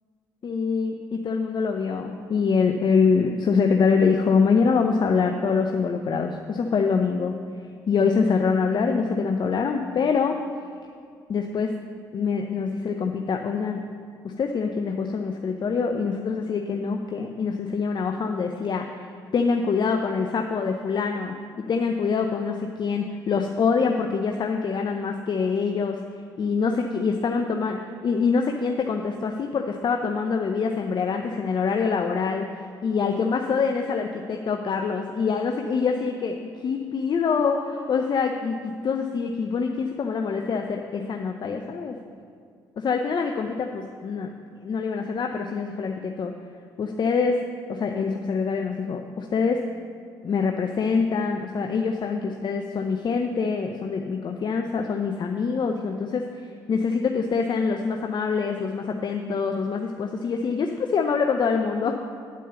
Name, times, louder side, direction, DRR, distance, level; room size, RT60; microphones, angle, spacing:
voice 1, 0.4-7.4 7.9-10.4 11.3-11.7 12.1-13.8 14.2-26.0 26.4-32.5 32.8-41.9 42.8-44.3 44.6-46.3 46.8-47.4 47.7-49.6 50.2-62.1, left 5 dB, 45° left, 4 dB, 0.6 m, -25 dB
9.7 x 4.5 x 7.0 m, 2.2 s
hypercardioid pair, 50°, 11 cm